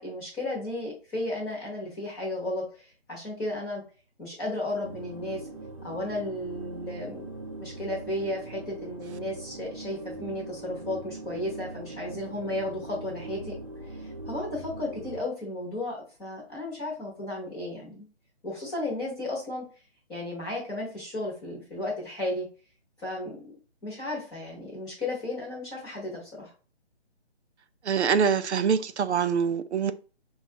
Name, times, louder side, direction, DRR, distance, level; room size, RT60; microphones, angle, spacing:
voice 1, 0.0-3.8 4.2-5.4 5.8-7.3 7.6-13.6 14.0-18.1 18.4-19.6 20.1-22.5 23.0-23.4 23.8-26.5, left 1 dB, 10° left, 0.9 m, -34 dB
sound 1, 4.8-15.2, right 2 dB, 35° right, 0.6 m, -41 dB
voice 2, 27.9-29.9, right 6 dB, 90° right, 0.6 m, -24 dB
5.3 x 2.4 x 2.8 m
figure-of-eight pair, 150°, 33 cm